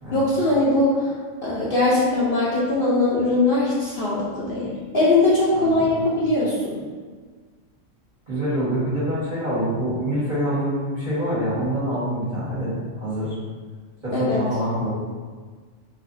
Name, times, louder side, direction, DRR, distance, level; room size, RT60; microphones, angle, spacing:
voice 1, 0.1-1.1 1.4-6.8 14.1-14.4, left 2 dB, 55° left, -7 dB, 0.8 m, -21 dB
voice 2, 5.5-6.0 8.3-13.4 14.0-14.9, equal, 40° right, -10 dB, 1.4 m, -26 dB
4.2 x 2.5 x 2.6 m, 1.5 s
omnidirectional pair, 1.3 m